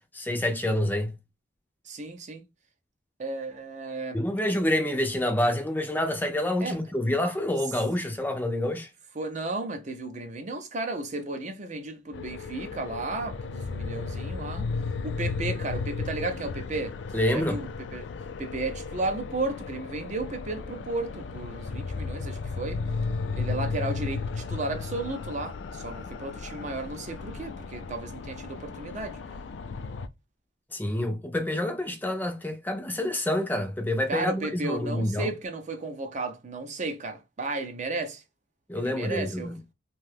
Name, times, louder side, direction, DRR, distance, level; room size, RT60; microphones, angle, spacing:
voice 1, 0.1-1.1 4.1-8.9 17.1-17.6 30.7-35.3 38.7-39.6, left 1 dB, 10° left, 0.5 m, -27 dB
voice 2, 1.9-2.4 3.2-4.2 6.6-6.8 9.2-14.7 15.0-17.0 17.3-18.1 18.4-22.8 23.3-29.2 34.1-38.2 38.7-39.5, right 2 dB, 40° right, 0.5 m, -34 dB
sound 1, 12.1-30.1, left 4 dB, 75° left, 0.3 m, -34 dB
2.7 x 2.3 x 3.3 m
head